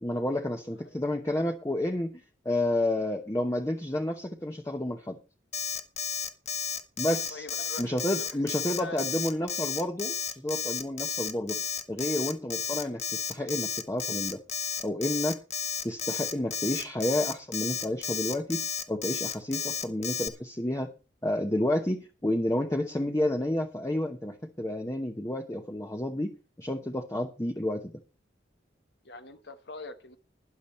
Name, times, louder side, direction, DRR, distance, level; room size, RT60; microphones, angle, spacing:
voice 1, 0.0-5.2 7.0-7.5 7.8-11.6 11.9-14.4 14.8-15.4 15.8-20.9 21.2-26.3 26.6-27.9, left 1 dB, 15° left, 4 dB, 1.0 m, -30 dB
Alarm, 5.5-20.3, left 7 dB, 40° left, 1.1 m, -32 dB
voice 2, 7.3-9.0 29.0-30.2, left 3 dB, 70° left, 9 dB, 1.2 m, -44 dB
12.5 x 10.5 x 4.4 m, 0.32 s
head